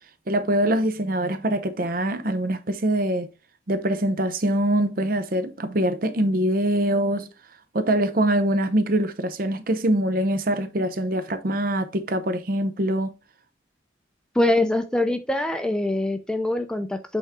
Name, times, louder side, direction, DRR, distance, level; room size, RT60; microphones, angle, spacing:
voice 1, 0.3-3.3 3.7-7.3 7.7-13.1, right 1 dB, 50° right, 0.7 m, -23 dB
voice 2, 14.4-17.2, left 1 dB, 5° left, 0.4 m, -23 dB
8.2 x 3.6 x 3.5 m
head